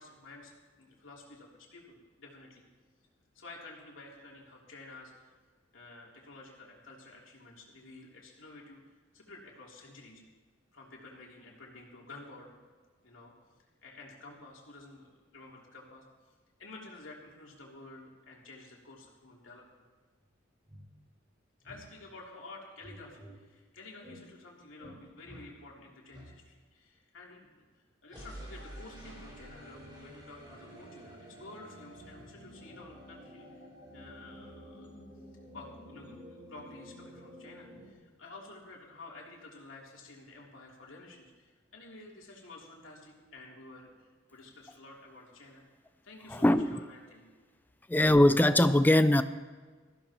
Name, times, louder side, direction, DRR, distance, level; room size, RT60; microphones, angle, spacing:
voice 1, 0.0-2.7 3.3-5.3 5.7-8.8 9.1-10.2 10.7-12.6 13.0-13.3 13.8-16.0 16.6-19.8 21.6-33.4 33.9-34.9 35.5-45.6 46.0-47.3, left 2 dB, 75° left, 3.3 m, -51 dB
sound 1, 20.2-20.3 20.7-20.8 21.6-21.8 22.8-23.3 24.0-24.2 24.8-25.0 25.2-25.4 26.1-26.3 28.1-37.9, equal, 20° right, 4.5 m, -50 dB
voice 2, 46.3-46.8 47.9-49.2, left 1 dB, 10° left, 0.4 m, -22 dB
20.5 x 15.0 x 3.0 m
head